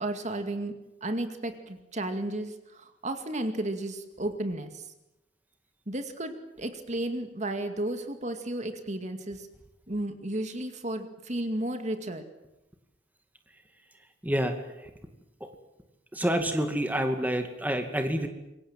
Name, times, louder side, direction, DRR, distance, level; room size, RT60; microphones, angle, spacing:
voice 1, 0.0-4.9 5.9-9.5 9.9-12.3, right 1 dB, 40° right, 7 dB, 2.2 m, -33 dB
voice 2, 14.2-14.5 16.1-18.3, equal, 10° right, 5 dB, 2.3 m, -27 dB
27.5 x 23.0 x 7.6 m, 0.93 s
head